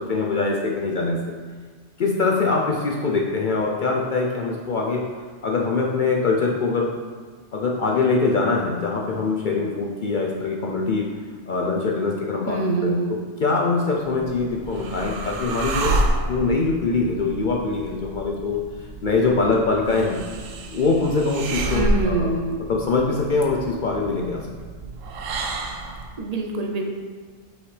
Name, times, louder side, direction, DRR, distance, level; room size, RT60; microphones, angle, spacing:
voice 1, 0.0-1.3 2.0-5.0 5.4-6.9 7.5-11.1 11.5-13.0 13.4-15.9 16.3-20.2 20.7-22.3 22.7-24.5, left 3 dB, 55° left, -1 dB, 0.5 m, -23 dB
voice 2, 12.5-13.1 21.7-22.6 26.2-26.8, right 3 dB, 45° right, 2 dB, 0.5 m, -25 dB
sound 1, 14.1-26.2, right 1 dB, 80° right, 1.0 m, -29 dB
5.7 x 5.7 x 3.2 m, 1.5 s
omnidirectional pair, 1.3 m